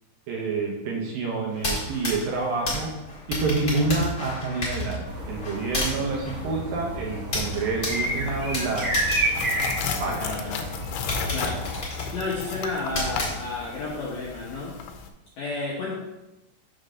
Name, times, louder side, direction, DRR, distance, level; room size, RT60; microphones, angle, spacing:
voice 1, 0.3-2.9 3.3-9.1 10.0-10.3, right 3 dB, 70° right, -1 dB, 2.4 m, -28 dB
sound 1, 1.5-10.3 10.7-10.8 11.1-13.9, left 1 dB, 40° left, 1.3 m, -32 dB
sound 2, 5.1-11.8, right 1 dB, 40° right, 2.0 m, -30 dB
sound 3, 8.0-15.1, left 6 dB, 85° left, 2.8 m, -35 dB
voice 2, 9.9-10.7 11.3-11.6 12.1-14.8 15.4-15.9, left 3 dB, 65° left, -6 dB, 1.9 m, -31 dB
6.6 x 3.9 x 6.3 m, 0.99 s
omnidirectional pair, 4.8 m